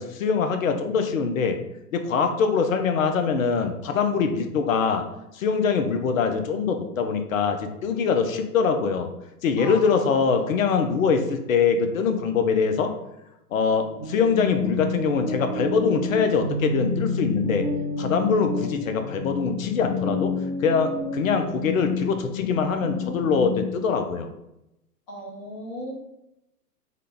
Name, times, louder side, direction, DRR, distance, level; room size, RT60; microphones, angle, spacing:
voice 1, 0.0-1.6 1.9-5.0 5.3-9.1 9.4-12.9 13.5-17.7 18.0-20.3 20.6-24.3, left 5 dB, 55° left, 6 dB, 0.6 m, -23 dB
voice 2, 9.6-10.6 25.1-25.9, equal, 30° left, -3 dB, 1.0 m, -37 dB
sound 1, 13.8-23.7, left 3 dB, 5° right, 0.9 m, -30 dB
3.7 x 2.2 x 3.4 m, 0.86 s
figure-of-eight pair, 120°, 49 cm